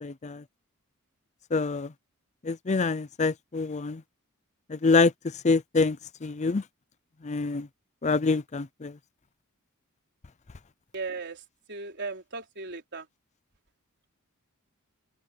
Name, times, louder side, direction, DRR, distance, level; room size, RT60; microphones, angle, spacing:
voice 1, 0.0-0.4 1.5-1.9 2.4-4.0 4.7-5.1 5.4-6.0 6.2-6.6 7.2-7.7 8.0-8.9, left 4 dB, 30° left, 0.5 m, -25 dB
voice 2, 10.9-11.4 11.7-13.0, right 4 dB, 50° right, 4.4 m, -36 dB
open air
head